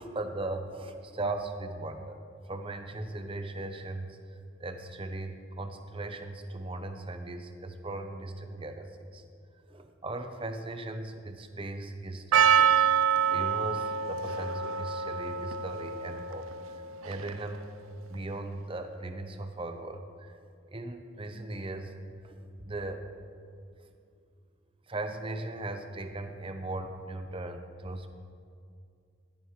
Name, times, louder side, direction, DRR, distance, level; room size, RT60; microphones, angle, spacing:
voice 1, 0.0-9.2 9.7-12.8 13.3-17.7 18.1-20.4 20.7-21.9 22.2-23.1 24.9-28.1, right 2 dB, 25° right, 6 dB, 0.7 m, -38 dB
Percussion, 12.3-17.6, right 8 dB, 75° right, 0.4 m, -27 dB
15.5 x 13.5 x 3.2 m, 2.4 s
head